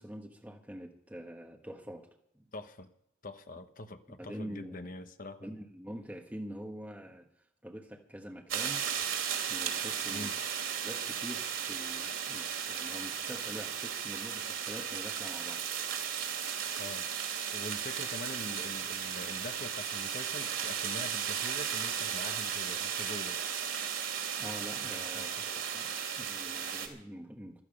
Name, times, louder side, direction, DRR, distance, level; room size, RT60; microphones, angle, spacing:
voice 1, 0.0-2.1 2.3-2.5 4.2-4.8 5.4-8.8 9.5-10.3 10.8-15.6 24.4-27.6, equal, 5° right, 1 dB, 1.2 m, -45 dB
voice 2, 2.5-2.9 3.2-5.5 10.1-10.4 16.8-17.1 17.5-23.4 24.8-25.5, left 2 dB, 40° left, 9 dB, 1.0 m, -44 dB
sound 1, 8.5-26.9, right 8 dB, 65° right, 2.9 m, -35 dB
15.5 x 13.5 x 5.3 m, 0.75 s
head